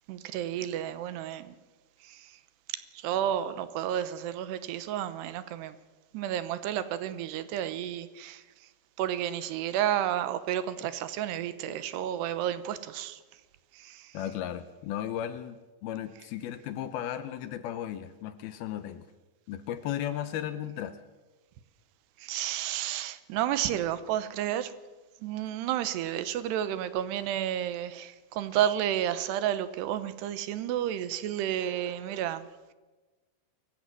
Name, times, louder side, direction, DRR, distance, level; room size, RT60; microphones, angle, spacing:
voice 1, 0.1-1.6 2.0-2.3 2.9-5.8 6.1-8.4 9.0-13.2 13.7-14.1 22.2-24.7 25.2-32.5, right 11 dB, 80° right, 13 dB, 3.0 m, -31 dB
voice 2, 14.1-19.1 19.5-21.0, left 11 dB, 75° left, 12 dB, 2.5 m, -35 dB
23.0 x 15.0 x 7.7 m, 1.2 s
omnidirectional pair, 4.9 m